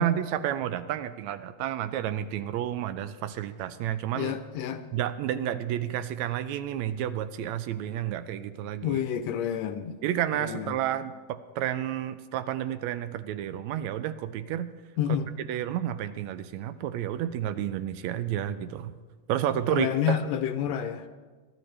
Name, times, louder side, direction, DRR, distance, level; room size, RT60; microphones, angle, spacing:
voice 1, 0.0-4.3 4.9-9.0 10.0-14.7 15.5-18.9 19.3-20.2, right 11 dB, 80° right, 12 dB, 1.9 m, -30 dB
voice 2, 4.1-4.8 8.8-10.0 10.4-10.8 15.0-15.3 19.5-21.1, left 9 dB, 75° left, 9 dB, 1.8 m, -29 dB
23.5 x 12.0 x 3.3 m, 1.4 s
omnidirectional pair, 3.3 m